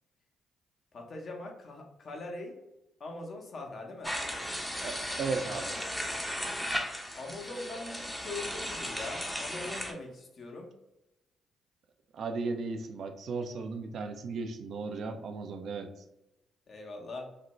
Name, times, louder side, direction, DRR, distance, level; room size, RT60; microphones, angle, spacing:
voice 1, 0.9-2.6 3.0-4.2 7.2-10.7 16.7-17.3, left 2 dB, 55° left, 2 dB, 0.6 m, -42 dB
sound 1, 4.0-9.9, equal, 5° left, 0.5 m, -36 dB
voice 2, 4.8-5.8 12.1-15.9, right 4 dB, 65° right, 6 dB, 0.3 m, -36 dB
2.5 x 2.1 x 2.9 m, 0.93 s
hypercardioid pair, 50°, 0 cm